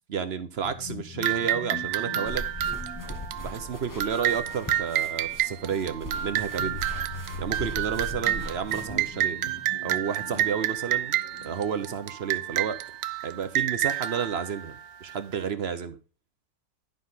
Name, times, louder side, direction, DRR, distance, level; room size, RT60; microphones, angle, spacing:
voice 1, 0.1-2.6 3.4-6.8 7.4-9.5 9.8-11.1 11.4-12.8 13.2-14.8 15.0-16.0, right 7 dB, 50° right, 0.8 m, -31 dB
sound 1, 0.6-12.2, left 4 dB, 75° left, 2.1 m, -44 dB
sound 2, 1.2-15.4, right 12 dB, 85° right, 1.3 m, -30 dB
sound 3, 2.2-9.1, left 1 dB, 20° left, 0.5 m, -40 dB
11.5 x 5.2 x 3.9 m
omnidirectional pair, 1.9 m